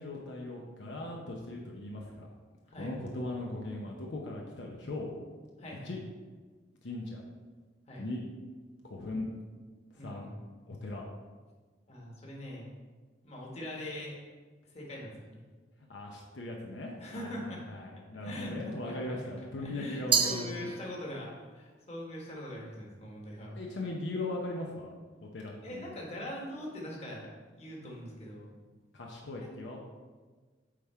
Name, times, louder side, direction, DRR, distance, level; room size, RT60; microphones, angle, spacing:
voice 1, 0.0-2.3 2.8-5.1 5.8-6.0 6.8-7.2 8.0-8.2 8.8-9.3 9.9-10.3 10.7-11.1 15.9-20.7 23.5-24.9 25.2-25.9 28.9-29.8, left 2 dB, 75° left, -1 dB, 0.8 m, -39 dB
voice 2, 5.6-6.0 7.9-8.1 9.1-9.2 10.0-10.4 11.9-12.7 13.2-14.2 14.7-15.4 17.0-17.6 18.2-18.5 18.9-19.2 19.6-23.5 25.6-27.3 27.5-28.5 29.4-29.5, left 1 dB, 35° left, -3 dB, 1.5 m, -42 dB
Glass, 20.1-21.3, right 6 dB, 30° right, 0.5 m, -30 dB
8.4 x 3.6 x 4.4 m, 1.4 s
head